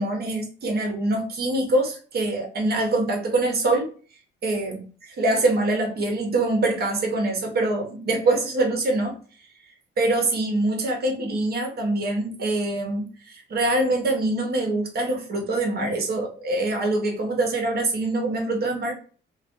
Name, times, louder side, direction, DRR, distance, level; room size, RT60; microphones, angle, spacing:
voice 1, 0.0-3.8 4.4-4.8 5.2-9.1 10.0-18.9, right 2 dB, 55° right, 1 dB, 0.9 m, -24 dB
2.4 x 2.2 x 2.5 m, 0.40 s
cardioid pair, 90°, 20 cm